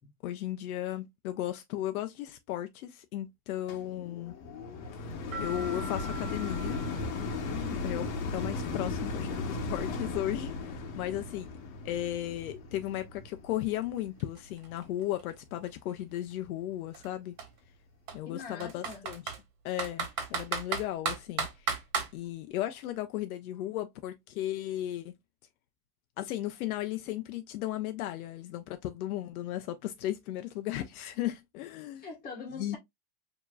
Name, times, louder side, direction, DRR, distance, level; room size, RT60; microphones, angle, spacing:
voice 1, 0.2-4.3 4.9-6.8 7.8-8.0 8.3-11.5 11.8-17.4 18.1-19.2 19.6-21.7 22.1-25.1 26.2-32.1 32.6-32.8, left 13 dB, 70° left, 0.6 m, -35 dB
sound 1, 3.7-15.0 15.6-15.7, left 4 dB, 50° left, 1.1 m, -36 dB
sound 2, 5.3-8.0, right 1 dB, 20° right, 0.3 m, -44 dB
voice 2, 7.5-8.0 18.2-19.1 32.0-32.8, left 5 dB, 20° left, 1.4 m, -43 dB
Computer keyboard, 13.8-13.9 14.2-16.2 16.9-17.1 17.4-17.5 18.1-19.4 19.8-22.1, right 6 dB, 60° right, 1.8 m, -34 dB
4.7 x 2.9 x 2.3 m
supercardioid pair, 170°, 45 cm